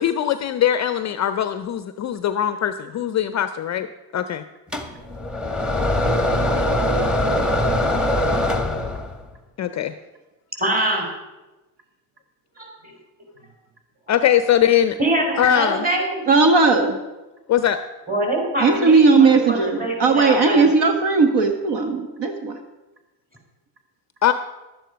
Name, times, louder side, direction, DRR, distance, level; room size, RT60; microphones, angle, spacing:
voice 1, 0.0-3.9 4.1-4.4 9.6-9.9 14.1-15.0 15.4-15.9 17.5-17.8 24.2-24.3, left 10 dB, 35° left, 11 dB, 0.5 m, -21 dB
sound 1, 4.7-9.2, left 1 dB, ahead, 1.2 m, -22 dB
voice 2, 10.6-11.1 12.6-12.7 15.0-16.2 18.1-20.7, right 1 dB, 20° right, 0 dB, 4.0 m, -23 dB
voice 3, 16.3-17.0 18.6-22.6, right 4 dB, 55° right, 6 dB, 1.4 m, -17 dB
11.5 x 9.2 x 5.2 m, 1.1 s
cardioid pair, 105°, 49 cm